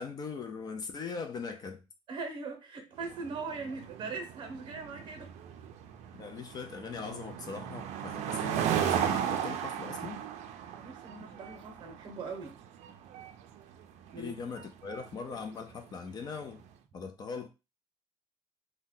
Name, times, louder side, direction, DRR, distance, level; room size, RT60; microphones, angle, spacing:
voice 1, 0.0-1.8 6.2-10.2 14.2-16.6 16.9-17.5, left 5 dB, 35° left, 0.4 m, -40 dB
voice 2, 2.1-5.3 10.7-12.6 14.1-14.3, right 4 dB, 40° right, 0.8 m, -40 dB
sound 1, 3.0-16.5, right 9 dB, 70° right, 0.4 m, -36 dB
2.7 x 2.2 x 3.7 m
cardioid pair, 160°, 12 cm